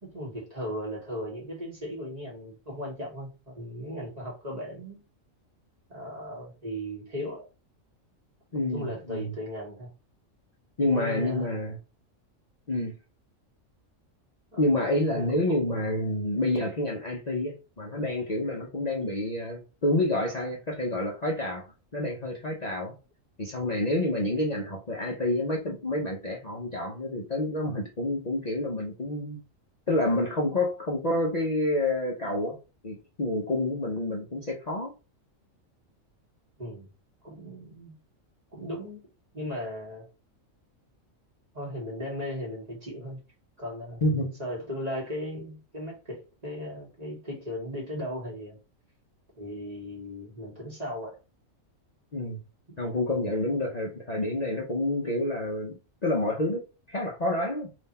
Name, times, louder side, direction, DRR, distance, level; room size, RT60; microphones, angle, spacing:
voice 1, 0.0-5.0 5.9-7.5 8.7-9.9 10.8-11.5 14.5-14.7 15.1-15.2 36.6-36.9 37.2-38.0 38.5-39.0 39.3-40.0 41.5-43.2 43.6-44.0 44.4-48.6 49.4-51.2, equal, 30° right, 1.6 m, -37 dB
voice 2, 8.5-9.3 10.8-11.8 12.7-12.9 14.6-21.7 21.9-22.9 23.4-29.4 29.9-32.6 32.8-34.9 44.0-44.3 52.1-52.4 52.8-56.6 56.9-57.7, left 1 dB, 40° left, 0.7 m, -28 dB
3.7 x 2.7 x 4.2 m
omnidirectional pair, 1.4 m